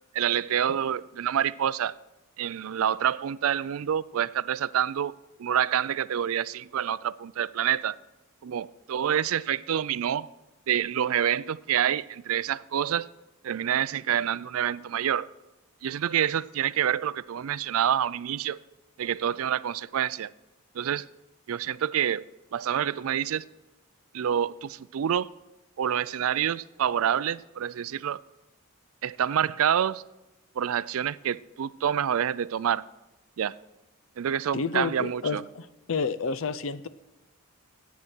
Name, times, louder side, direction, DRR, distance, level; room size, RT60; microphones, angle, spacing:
voice 1, 0.1-2.0 2.4-5.1 5.4-8.0 8.4-10.3 10.7-13.1 13.4-15.3 15.8-18.6 19.0-20.3 20.7-21.1 21.5-22.2 22.5-23.4 24.1-25.3 25.8-28.2 29.0-30.0 30.6-32.8 33.4-33.6 34.2-35.4, right 9 dB, 70° right, 19 dB, 0.4 m, -27 dB
voice 2, 34.5-36.9, left 4 dB, 60° left, 15 dB, 0.6 m, -30 dB
16.5 x 8.4 x 4.5 m, 1.1 s
head